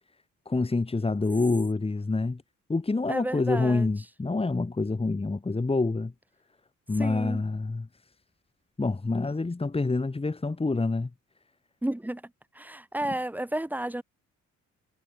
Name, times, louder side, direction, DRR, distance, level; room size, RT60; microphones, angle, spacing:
voice 1, 0.5-2.4 2.7-6.1 6.9-7.9 8.8-11.1, left 3 dB, 20° left, 2.8 m, -27 dB
voice 2, 3.1-3.9 7.0-7.4 11.8-12.2 12.5-14.0, right 1 dB, 5° right, 1.6 m, -32 dB
cardioid pair, 90°, 30 cm